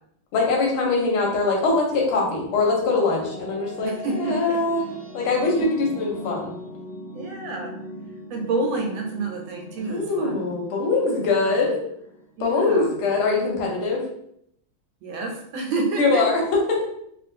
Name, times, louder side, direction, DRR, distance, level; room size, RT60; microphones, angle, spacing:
voice 1, 0.3-4.8 5.1-6.5 9.9-11.8 12.4-14.0 16.0-16.9, left 3 dB, 90° left, -1 dB, 1.7 m, -22 dB
sound 1, 2.1-12.9, equal, 45° left, 0.8 m, -41 dB
voice 2, 3.8-4.6 5.5-5.6 7.1-7.7 8.3-10.4 11.4-11.6 12.4-12.9 15.0-16.4, right 3 dB, 80° right, 1 dB, 1.4 m, -29 dB
3.5 x 2.4 x 2.6 m, 0.73 s
omnidirectional pair, 2.2 m